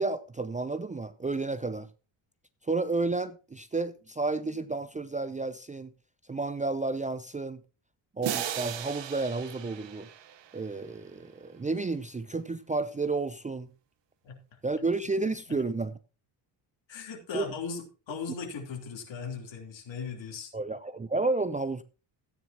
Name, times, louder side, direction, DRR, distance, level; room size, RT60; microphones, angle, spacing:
voice 1, 0.0-1.9 2.7-5.9 6.3-7.6 8.2-10.1 10.5-13.7 14.6-16.0 17.3-17.5 20.5-21.8, right 3 dB, 15° right, 0.4 m, -31 dB
sound 1, 8.2-11.0, right 10 dB, 60° right, 1.2 m, -37 dB
voice 2, 14.2-14.6 16.9-20.5, left 5 dB, 65° left, 3.4 m, -38 dB
14.0 x 9.6 x 2.9 m
cardioid pair, 120°, 48 cm